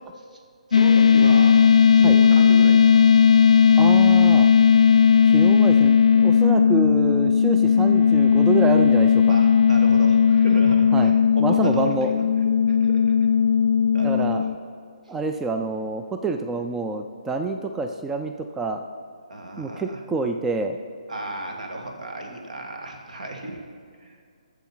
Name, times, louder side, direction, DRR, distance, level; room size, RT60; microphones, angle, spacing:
sound 1, 0.7-14.5, left 7 dB, 70° left, 0.3 m, -16 dB
voice 1, 0.7-1.6 1.9-3.1 9.3-12.1 12.7-13.1 13.9-14.4 19.3-20.0 21.1-23.6 24.0-24.2, right 1 dB, 75° right, 3 dB, 1.8 m, -33 dB
voice 2, 3.8-4.5 5.2-9.4 10.9-11.1 11.4-12.1 14.0-14.4 15.1-18.8 19.6-20.8, right 3 dB, 10° right, 6 dB, 0.3 m, -27 dB
9.1 x 7.1 x 5.6 m, 2.2 s
hypercardioid pair, 150°, 4 cm